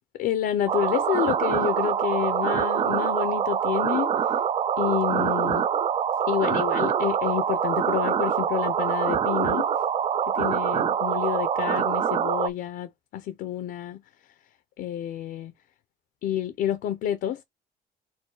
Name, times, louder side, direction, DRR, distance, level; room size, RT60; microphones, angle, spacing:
voice 1, 0.2-4.1 4.8-5.7 6.3-9.7 10.3-14.0 14.8-15.5 16.2-17.4, left 11 dB, 70° left, 0.6 m, -29 dB
sound 1, 0.7-12.5, right 8 dB, 35° right, 0.3 m, -25 dB
4.5 x 2.2 x 4.6 m
cardioid pair, 110°, 17 cm